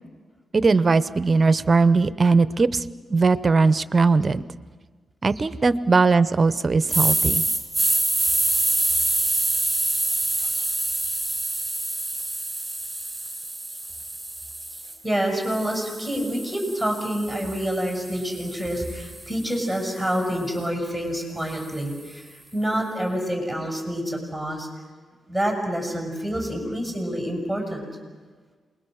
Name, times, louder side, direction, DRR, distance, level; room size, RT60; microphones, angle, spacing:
voice 1, 0.5-2.8 3.1-4.4 5.2-7.4, right 4 dB, 35° right, 15 dB, 0.7 m, -19 dB
sound 1, 6.9-14.9 15.4-19.6, right 2 dB, 10° right, 3.8 m, -26 dB
voice 2, 15.0-24.7 25.3-27.8, equal, 10° left, 0 dB, 6.7 m, -27 dB
28.0 x 21.5 x 6.4 m, 1.5 s
cardioid pair, 105°, 0 cm